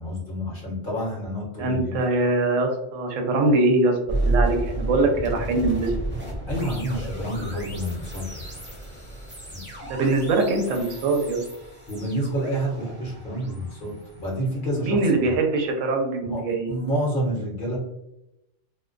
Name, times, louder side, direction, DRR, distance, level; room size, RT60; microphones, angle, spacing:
voice 1, 0.0-2.0 6.5-8.5 9.5-9.6 11.9-15.4 16.2-17.8, equal, 50° left, -4 dB, 0.8 m, -29 dB
voice 2, 1.6-4.0 4.2-5.9 9.8-11.4 14.8-16.7, right 2 dB, 85° right, 3 dB, 0.9 m, -22 dB
sound 1, 4.1-15.1, right 2 dB, 10° right, 0.6 m, -32 dB
2.4 x 2.1 x 2.4 m, 0.89 s
omnidirectional pair, 1.3 m